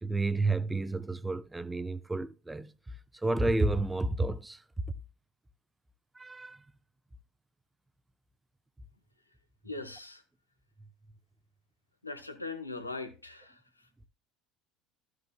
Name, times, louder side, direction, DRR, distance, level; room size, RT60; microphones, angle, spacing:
voice 1, 0.0-4.9 6.1-6.6, right 2 dB, 10° right, 0.7 m, -31 dB
voice 2, 9.6-10.2 12.0-13.6, left 3 dB, 85° left, 1.0 m, -40 dB
14.5 x 6.4 x 2.2 m
figure-of-eight pair, 65°, 0 cm